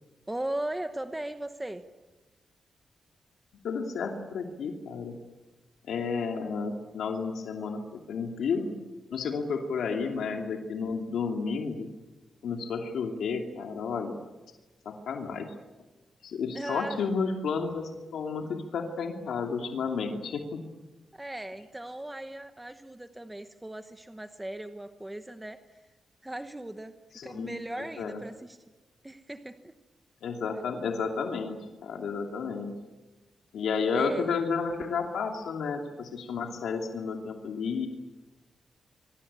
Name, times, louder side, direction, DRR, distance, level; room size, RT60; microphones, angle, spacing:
voice 1, 0.3-1.8 16.5-17.0 21.1-25.9 26.2-26.9 27.2-28.6 29.0-29.7 33.9-34.4, right 1 dB, 10° right, 8 dB, 1.0 m, -38 dB
voice 2, 3.6-5.1 5.9-7.8 8.1-8.7 9.1-11.9 12.4-14.2 14.8-15.5 16.2-20.6 27.1-27.5 28.0-28.2 30.2-32.7 33.5-37.9, left 5 dB, 85° left, 3 dB, 2.7 m, -31 dB
26.0 x 24.0 x 8.8 m, 1.2 s
wide cardioid pair, 155°, 0 cm